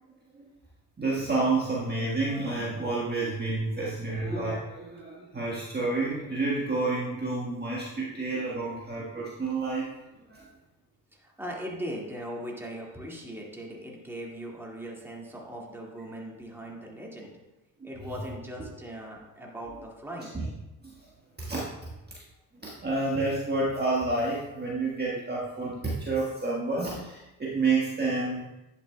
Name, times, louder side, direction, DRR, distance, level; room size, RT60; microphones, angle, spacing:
voice 1, 1.0-4.6 4.8-9.9 10.3-10.4 20.3-20.5 20.8-20.9 21.4-21.6 22.7-28.5, right 3 dB, 20° right, -5 dB, 1.6 m, -29 dB
voice 2, 11.1-17.4 17.8-20.3, equal, 5° right, -3 dB, 2.0 m, -39 dB
10.5 x 5.9 x 2.3 m, 0.98 s
hypercardioid pair, 65°, 44 cm